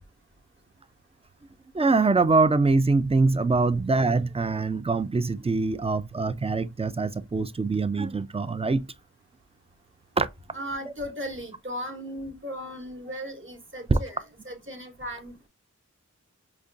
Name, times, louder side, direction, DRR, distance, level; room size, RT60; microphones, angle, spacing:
voice 1, 1.7-8.8 10.2-10.3 13.9-14.0, right 3 dB, 20° right, 0.3 m, -23 dB
voice 2, 10.5-15.3, equal, 40° right, 1.0 m, -36 dB
5.0 x 2.2 x 2.5 m
wide cardioid pair, 65°, 30 cm